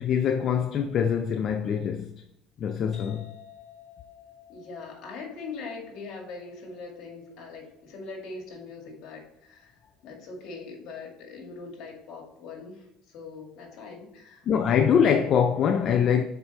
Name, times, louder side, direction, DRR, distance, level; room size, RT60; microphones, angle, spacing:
voice 1, 0.0-2.1 2.6-3.3 14.5-16.2, left 7 dB, 45° left, 0.4 m, -23 dB
sound 1, 2.9-10.4, left 8 dB, 10° left, 2.6 m, -54 dB
voice 2, 4.5-9.8 10.0-12.8 13.1-14.5, left 4 dB, 60° left, 2.1 m, -41 dB
6.2 x 4.7 x 4.2 m
cardioid pair, 130°, 0 cm